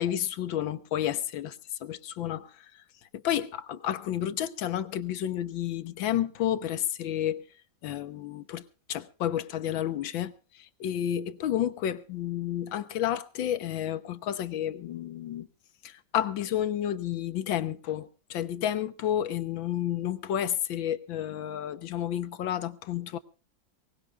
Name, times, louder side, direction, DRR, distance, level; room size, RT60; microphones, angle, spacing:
voice 1, 0.0-2.5 3.1-7.4 7.8-8.6 8.9-10.3 10.8-15.5 15.8-23.2, left 11 dB, 85° left, 1.7 m, -31 dB
23.5 x 19.0 x 2.4 m
omnidirectional pair, 2.1 m